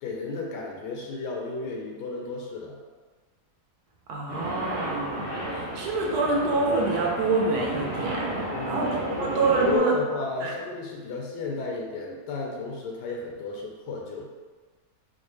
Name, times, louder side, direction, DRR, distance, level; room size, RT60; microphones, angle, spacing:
voice 1, 0.0-2.8 8.5-14.3, left 3 dB, 85° left, -1 dB, 1.2 m, -33 dB
voice 2, 4.1-8.3 8.7-8.9 9.2-9.9 10.4-10.5, right 3 dB, 75° right, -2 dB, 1.1 m, -26 dB
sound 1, 4.3-9.8, right 1 dB, 40° right, 0.8 m, -32 dB
3.9 x 2.1 x 3.0 m, 1.4 s
omnidirectional pair, 1.7 m